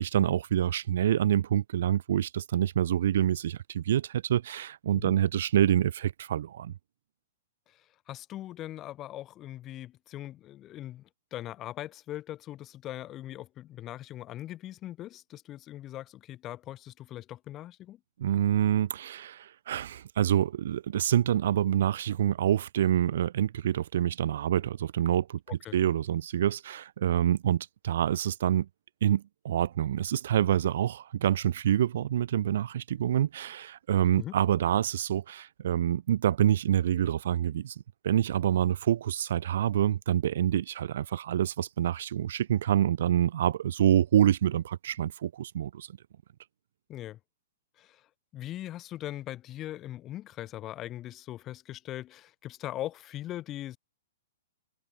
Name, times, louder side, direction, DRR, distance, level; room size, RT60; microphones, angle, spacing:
voice 1, 0.0-6.7 18.2-25.4 25.7-28.7 29.0-37.7 38.0-45.9, right 11 dB, 65° right, 0.7 m, -26 dB
voice 2, 7.7-18.0 25.6-25.8 34.2-34.4 46.9-47.2 47.8-48.1 48.3-53.8, left 13 dB, 25° left, 3.8 m, -40 dB
hypercardioid pair, 145°, 0 cm